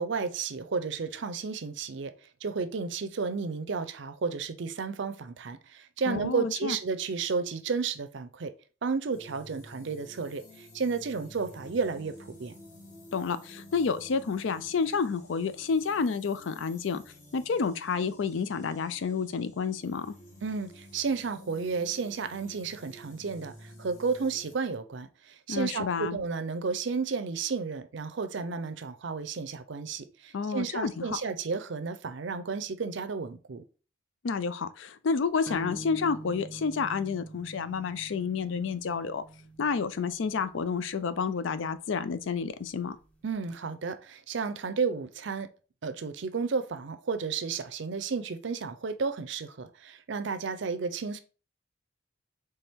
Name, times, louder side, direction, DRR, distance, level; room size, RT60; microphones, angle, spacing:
voice 1, 0.0-2.1 2.4-8.5 8.8-12.5 20.4-33.6 43.2-45.5 45.8-51.2, right 5 dB, 65° right, 0.5 m, -32 dB
voice 2, 6.1-6.8 13.1-17.0 17.3-20.1 25.5-26.2 30.3-31.2 34.2-39.2 39.6-43.0, left 5 dB, 75° left, 0.4 m, -30 dB
sound 1, 9.1-24.6, left 1 dB, 35° left, 1.2 m, -51 dB
sound 2, 35.5-43.0, right 1 dB, 5° left, 0.5 m, -46 dB
4.3 x 3.3 x 3.5 m
head